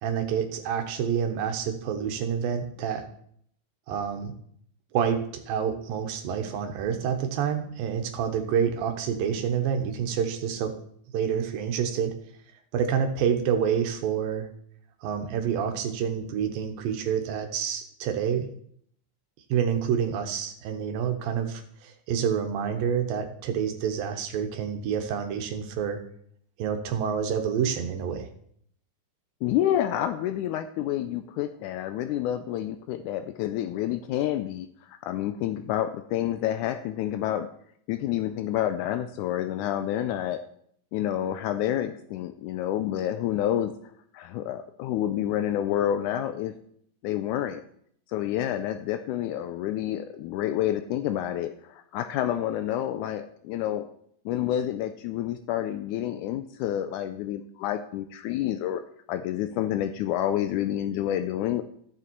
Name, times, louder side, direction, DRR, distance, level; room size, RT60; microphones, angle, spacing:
voice 1, 0.0-3.1 3.9-4.3 4.9-10.7 11.1-12.1 12.7-14.5 15.0-18.5 19.5-26.0 26.6-28.3, right 8 dB, 85° right, 6 dB, 2.7 m, -28 dB
voice 2, 29.4-37.5 37.9-40.4 40.9-43.7 44.1-46.5 47.0-47.6 48.1-53.9 54.3-58.8 59.1-61.6, left 11 dB, 85° left, 9 dB, 1.8 m, -28 dB
14.0 x 6.9 x 4.5 m, 0.66 s
omnidirectional pair, 4.0 m